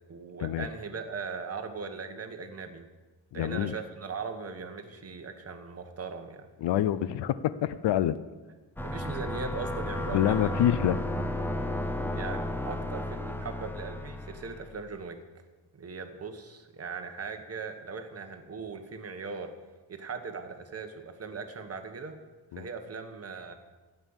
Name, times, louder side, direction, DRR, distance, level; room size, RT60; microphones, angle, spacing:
voice 1, 0.1-2.8 3.3-6.5 8.8-10.5 12.1-15.5 15.7-19.5 19.9-22.2 22.5-23.5, right 5 dB, 35° right, 6 dB, 1.3 m, -39 dB
voice 2, 3.3-3.7 6.6-8.2 10.1-11.0 22.5-22.7, left 11 dB, 75° left, 15 dB, 0.6 m, -26 dB
sound 1, 8.8-14.7, left 1 dB, 5° left, 0.7 m, -33 dB
12.5 x 9.3 x 7.2 m, 1.2 s
wide cardioid pair, 155°, 42 cm